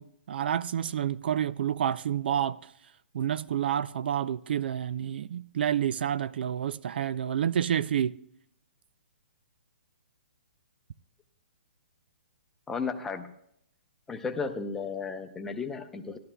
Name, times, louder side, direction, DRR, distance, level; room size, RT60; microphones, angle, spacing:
voice 1, 0.0-2.6 3.1-8.2, right 9 dB, 60° right, 0.4 m, -29 dB
voice 2, 12.7-13.3 14.1-16.2, left 5 dB, 5° left, 0.7 m, -34 dB
17.5 x 12.5 x 2.2 m
hypercardioid pair, 160°, 6 cm